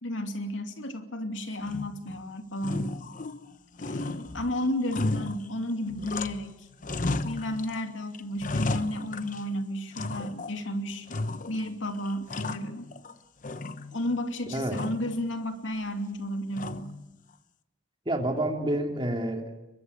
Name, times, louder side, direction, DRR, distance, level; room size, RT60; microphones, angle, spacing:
voice 1, 0.0-2.9 3.9-6.7 7.2-11.1 11.5-12.9 13.9-16.9, left 1 dB, 85° left, 5 dB, 2.8 m, -32 dB
sound 1, 1.6-2.2 2.6-3.5 3.8-6.5 6.8-7.8 8.1-9.5 9.9-10.6 11.1-11.7 12.1-13.1 13.4-14.2 14.7-15.1 16.6-17.1, left 2 dB, 45° left, 1.0 m, -34 dB
voice 2, 18.0-19.6, right 1 dB, 25° right, 3 dB, 3.1 m, -29 dB
23.5 x 22.0 x 8.3 m, 0.93 s
head